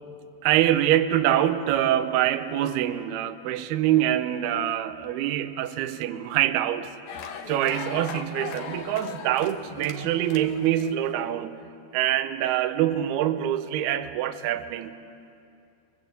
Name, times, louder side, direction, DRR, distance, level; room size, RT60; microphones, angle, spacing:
voice 1, 0.4-6.9 7.5-11.6 11.9-15.0, right 12 dB, 75° right, 9 dB, 2.5 m, -25 dB
sound 1, 7.1-11.1, left 7 dB, 65° left, 2.5 m, -38 dB
24.5 x 21.5 x 8.0 m, 2.5 s
omnidirectional pair, 5.4 m